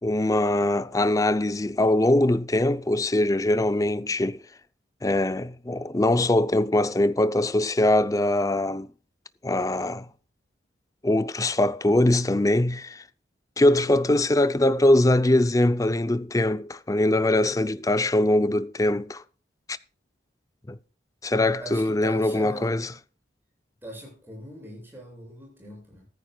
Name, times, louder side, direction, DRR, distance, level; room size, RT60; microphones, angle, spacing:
voice 1, 0.0-4.4 5.0-8.9 9.4-10.1 11.0-13.0 13.6-19.2 19.7-19.8 20.7-20.8 21.2-22.8, left 1 dB, 20° left, 0.5 m, -22 dB
voice 2, 21.6-22.7 23.8-26.1, equal, 10° right, 7.4 m, -41 dB
14.5 x 14.0 x 2.3 m
head